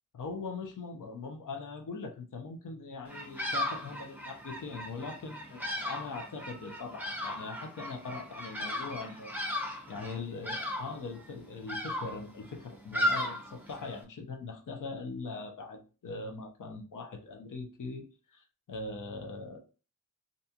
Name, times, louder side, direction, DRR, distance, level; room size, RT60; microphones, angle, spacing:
voice 1, 0.1-9.3 9.9-18.0 18.3-19.6, left 4 dB, 70° left, 3 dB, 0.6 m, -41 dB
Bird vocalization bird call bird song, 3.1-14.0, left 1 dB, 5° right, 0.6 m, -36 dB
2.6 x 2.3 x 2.8 m, 0.34 s
wide cardioid pair, 105°, 33 cm